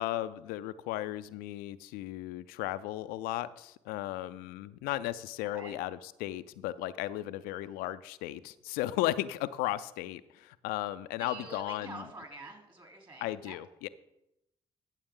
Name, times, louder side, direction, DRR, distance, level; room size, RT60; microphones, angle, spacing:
voice 1, 0.0-12.1 13.2-13.9, left 14 dB, 80° left, 13 dB, 0.4 m, -35 dB
voice 2, 11.2-13.6, right 3 dB, 30° right, 2 dB, 3.3 m, -46 dB
14.5 x 6.8 x 3.7 m, 0.85 s
hypercardioid pair, 45°, 15 cm